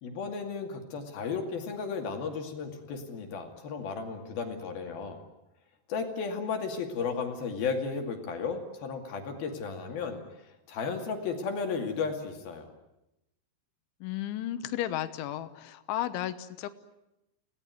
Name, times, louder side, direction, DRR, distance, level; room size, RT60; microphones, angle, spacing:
voice 1, 0.0-5.2 5.9-12.7, left 5 dB, 55° left, 4 dB, 4.0 m, -34 dB
voice 2, 14.0-16.7, left 12 dB, 90° left, 12 dB, 3.6 m, -33 dB
29.5 x 18.5 x 9.5 m, 0.91 s
omnidirectional pair, 5.3 m